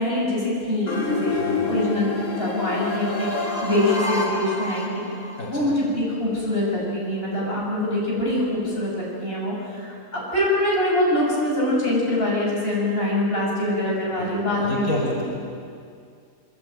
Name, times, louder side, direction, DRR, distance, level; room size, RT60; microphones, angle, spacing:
voice 1, 0.0-5.0 5.5-14.9, left 1 dB, 40° left, -4 dB, 8.1 m, -24 dB
sound 1, 0.9-5.5, left 3 dB, 55° left, 3.0 m, -28 dB
voice 2, 1.3-1.7 5.4-5.7 14.1-15.2, left 1 dB, 80° left, -3 dB, 5.5 m, -30 dB
27.0 x 22.5 x 9.3 m, 2.3 s
omnidirectional pair, 1.6 m